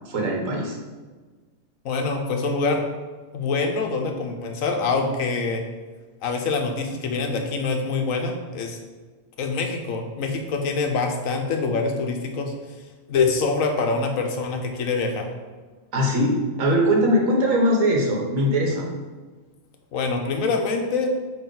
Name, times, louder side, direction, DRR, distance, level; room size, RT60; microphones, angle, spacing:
voice 1, 0.0-0.8 15.9-18.9, equal, 70° right, -1 dB, 1.6 m, -21 dB
voice 2, 1.8-2.8 3.3-5.6 6.2-8.8 9.4-12.5 13.1-15.3 19.9-21.1, left 4 dB, 75° left, 3 dB, 1.2 m, -25 dB
8.6 x 3.1 x 4.0 m, 1.4 s
omnidirectional pair, 1.4 m